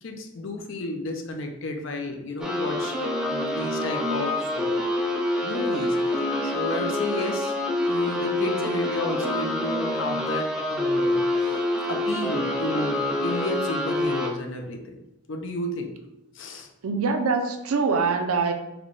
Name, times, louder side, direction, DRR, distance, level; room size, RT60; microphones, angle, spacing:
voice 1, 0.0-4.9 5.4-7.5 7.9-11.6 11.9-15.0 15.3-16.0 16.3-16.7, left 1 dB, 60° left, 4 dB, 0.5 m, -32 dB
sound 1, 2.4-14.3, left 1 dB, 5° right, 0.3 m, -26 dB
voice 2, 16.8-18.5, right 4 dB, 85° right, 6 dB, 0.5 m, -24 dB
3.4 x 2.2 x 3.7 m, 0.93 s
head